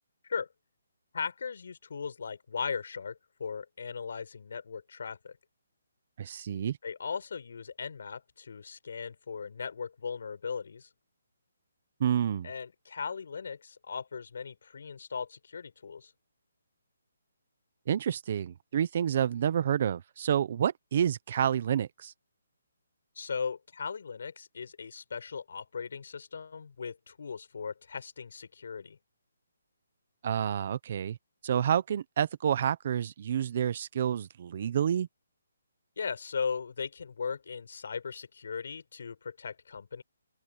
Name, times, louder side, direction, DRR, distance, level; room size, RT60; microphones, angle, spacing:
voice 1, 1.1-5.4 6.8-10.9 12.4-16.1 23.1-29.0 36.0-40.0, left 6 dB, 60° left, 5.1 m, -38 dB
voice 2, 6.2-6.8 12.0-12.5 17.9-22.1 30.2-31.2 31.4-35.1, right 9 dB, 40° right, 0.8 m, -29 dB
open air
hypercardioid pair, 170°, 0 cm